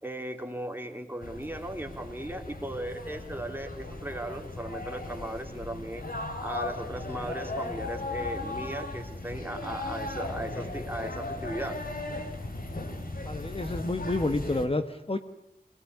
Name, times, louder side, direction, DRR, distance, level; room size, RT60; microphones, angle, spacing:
voice 1, 0.0-6.0 6.4-11.8, right 1 dB, 15° right, 4 dB, 3.2 m, -37 dB
sound 1, 1.2-14.7, left 2 dB, 65° left, 3.8 m, -37 dB
voice 2, 13.2-15.2, left 2 dB, 35° left, 8 dB, 1.4 m, -29 dB
24.5 x 18.0 x 9.6 m, 0.83 s
wide cardioid pair, 70°, 16 cm